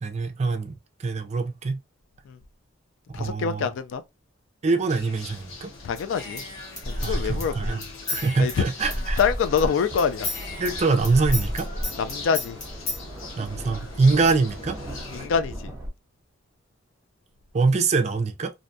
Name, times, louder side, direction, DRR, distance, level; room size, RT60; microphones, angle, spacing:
voice 1, 0.0-0.7 1.0-1.8 3.1-3.7 4.6-5.7 7.0-7.8 8.1-9.2 10.6-11.7 13.4-14.8 17.5-18.5, right 4 dB, 35° right, 0.4 m, -24 dB
voice 2, 3.1-4.0 5.8-6.4 6.9-7.6 8.4-8.6 9.2-10.3 12.0-12.6 15.1-15.7, left 6 dB, 70° left, 0.3 m, -25 dB
sound 1, 4.9-15.3, left 3 dB, 90° left, 0.7 m, -41 dB
Human voice / Scissors, 6.0-9.7 10.0-13.0, left 1 dB, 40° left, 1.1 m, -31 dB
sound 2, 8.7-15.9, right 1 dB, 15° right, 0.8 m, -41 dB
2.5 x 2.1 x 2.6 m
head